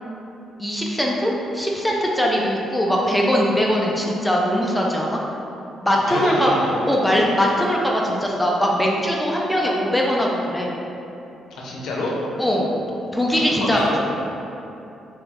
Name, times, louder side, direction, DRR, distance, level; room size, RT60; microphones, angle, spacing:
voice 1, 0.6-5.2 5.8-6.5 6.9-10.7 12.4-12.7 13.1-13.8, equal, 5° left, -2 dB, 0.4 m, -21 dB
voice 2, 6.1-6.8 11.5-12.1 13.3-14.0, left 1 dB, 80° left, -3 dB, 0.6 m, -27 dB
2.9 x 2.3 x 3.3 m, 2.8 s
cardioid pair, 90°, 0 cm